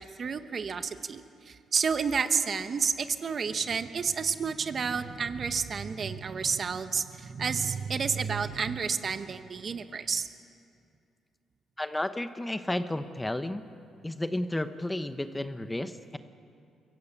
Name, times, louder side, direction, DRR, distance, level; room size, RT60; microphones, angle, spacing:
voice 1, 0.0-10.3, right 6 dB, 45° right, 10 dB, 1.1 m, -30 dB
voice 2, 11.8-13.6 14.0-16.2, left 1 dB, 10° left, 10 dB, 0.9 m, -32 dB
23.0 x 15.5 x 8.3 m, 2.5 s
cardioid pair, 90°, 0 cm